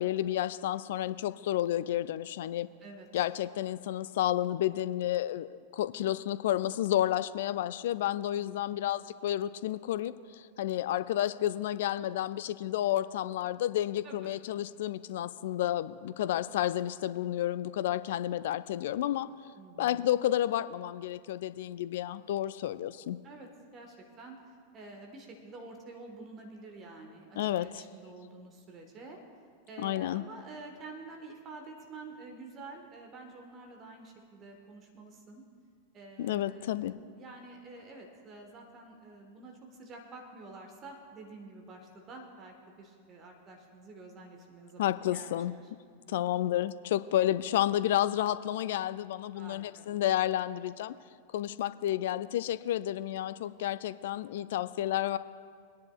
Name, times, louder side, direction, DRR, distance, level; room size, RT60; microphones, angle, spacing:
voice 1, 0.0-2.7 3.1-19.3 19.8-23.2 27.4-27.8 29.8-30.2 36.2-36.9 44.8-45.5 46.1-50.9 51.3-55.2, left 12 dB, 55° left, 14 dB, 0.3 m, -31 dB
voice 2, 2.8-3.2 8.3-8.8 14.0-14.3 19.5-20.1 23.2-24.3 24.7-29.2 29.7-35.4 35.9-46.2 49.3-49.9, right 3 dB, 30° right, 2 dB, 1.3 m, -49 dB
22.0 x 10.5 x 2.3 m, 2.1 s
figure-of-eight pair, 90°, 0 cm